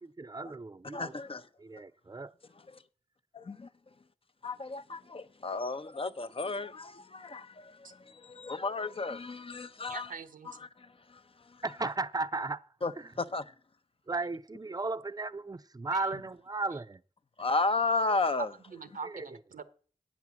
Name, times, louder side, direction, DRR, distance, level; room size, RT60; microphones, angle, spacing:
voice 1, 0.0-1.1 1.6-2.3 11.6-12.6 13.0-13.1 14.1-17.0 19.0-19.4, right 3 dB, 30° right, 0.5 m, -35 dB
voice 2, 0.9-1.5 2.7-2.8 3.3-3.7 4.4-10.1 10.5-11.2 12.8-12.9 13.2-13.4 17.4-18.5, left 3 dB, 40° left, 0.6 m, -33 dB
voice 3, 9.9-10.6 15.9-16.0 18.7-19.6, right 5 dB, 80° right, 0.8 m, -43 dB
8.3 x 6.0 x 7.0 m
cardioid pair, 50°, 14 cm